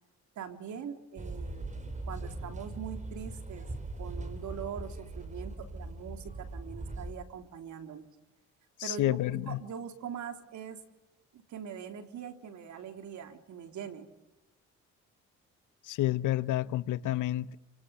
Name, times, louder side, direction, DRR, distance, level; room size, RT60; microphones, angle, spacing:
voice 1, 0.4-3.7 4.0-8.1 8.8-9.2 9.5-10.8 11.3-14.1, right 8 dB, 70° right, 3.5 m, -42 dB
sound 1, 1.2-7.1, right 2 dB, 25° right, 5.3 m, -40 dB
voice 2, 8.8-9.6 15.8-17.6, left 14 dB, 85° left, 1.0 m, -29 dB
29.5 x 24.5 x 7.1 m
cardioid pair, 90°, 30 cm